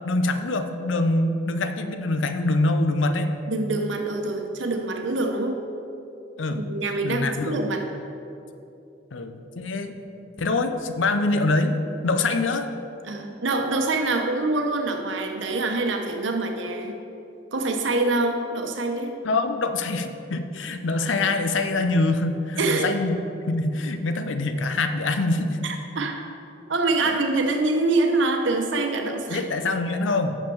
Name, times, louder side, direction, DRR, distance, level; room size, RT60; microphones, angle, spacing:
voice 1, 0.0-3.3 6.4-6.6 7.0-7.6 9.1-10.0 10.4-11.8 12.0-12.7 19.2-23.1 23.5-25.6 27.1-27.2 29.3-30.4, left 2 dB, 80° left, 8 dB, 0.6 m, -24 dB
voice 2, 3.5-5.6 6.5-7.9 13.0-16.9 17.5-19.1 22.6-22.9 25.6-26.2 26.7-29.4, right 2 dB, 75° right, 3 dB, 1.0 m, -25 dB
6.5 x 6.4 x 7.0 m, 2.8 s
head